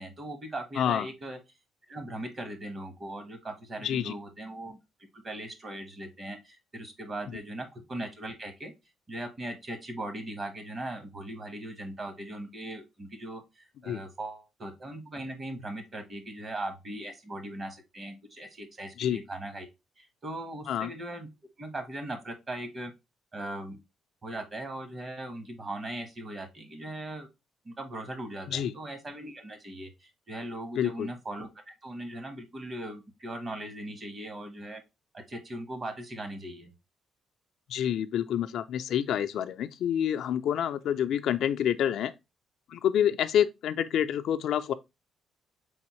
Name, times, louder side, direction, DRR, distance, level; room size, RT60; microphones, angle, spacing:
voice 1, 0.0-1.4 1.9-4.8 5.1-8.7 9.1-19.7 20.0-21.3 21.6-22.9 23.3-23.8 24.2-27.3 27.6-34.8 35.1-36.7, right 1 dB, 35° right, 1.1 m, -39 dB
voice 2, 3.8-4.1 13.9-14.0 19.0-19.2 20.7-20.9 28.5-28.7 30.8-31.1 37.7-42.1 42.7-44.7, left 10 dB, 75° left, 0.3 m, -27 dB
4.0 x 3.5 x 2.9 m
cardioid pair, 90°, 0 cm